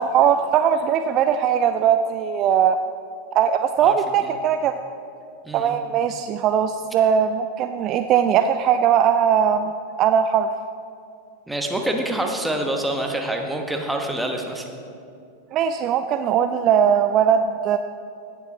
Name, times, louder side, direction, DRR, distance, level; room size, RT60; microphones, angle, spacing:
voice 1, 0.0-2.8 3.3-4.8 5.5-9.7 10.0-10.5 15.5-17.8, right 8 dB, 35° right, 8 dB, 0.4 m, -20 dB
voice 2, 5.4-5.8 11.5-14.7, right 1 dB, 5° right, 2 dB, 1.2 m, -26 dB
16.5 x 7.3 x 4.0 m, 2.5 s
figure-of-eight pair, 90°, 0 cm